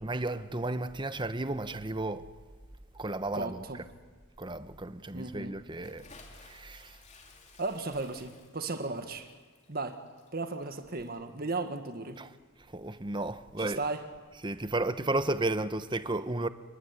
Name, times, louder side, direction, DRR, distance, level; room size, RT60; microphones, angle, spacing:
voice 1, 0.0-2.3 2.9-3.6 4.4-6.1 6.4-7.0 12.2-12.3 12.7-13.8 14.4-16.5, right 2 dB, 20° right, 1.1 m, -33 dB
voice 2, 3.3-3.8 5.1-5.6 7.6-9.3 9.7-10.0 10.3-12.2 13.6-14.0, right 3 dB, 45° right, 1.7 m, -35 dB
Bathtub (filling or washing) / Splash splatter, 5.8-12.4, left 4 dB, 30° left, 3.5 m, -58 dB
30.0 x 20.5 x 9.7 m
head